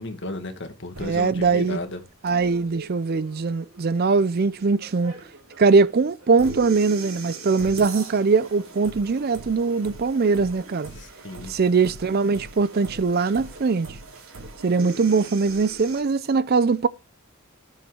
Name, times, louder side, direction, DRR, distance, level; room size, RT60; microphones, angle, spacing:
voice 1, 0.0-2.0 11.0-11.5, left 2 dB, 55° left, 1.8 m, -34 dB
sound 1, 0.9-16.0, right 3 dB, 75° right, 3.0 m, -41 dB
voice 2, 1.0-1.8 2.2-5.1 5.6-10.9 11.5-13.9 14.6-16.9, right 4 dB, 45° right, 0.4 m, -21 dB
7.2 x 5.5 x 6.2 m
head